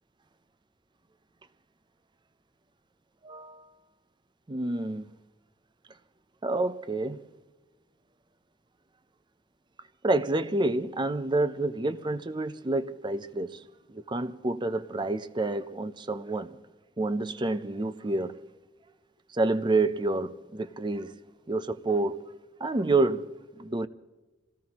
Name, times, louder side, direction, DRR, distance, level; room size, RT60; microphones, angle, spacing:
voice 1, 3.2-3.7 4.5-5.0 6.4-7.2 10.0-13.5 13.9-16.6 17.0-18.4 19.3-21.2 21.5-22.2 22.6-23.9, right 2 dB, 25° right, 0.6 m, -28 dB
26.0 x 18.0 x 3.0 m
head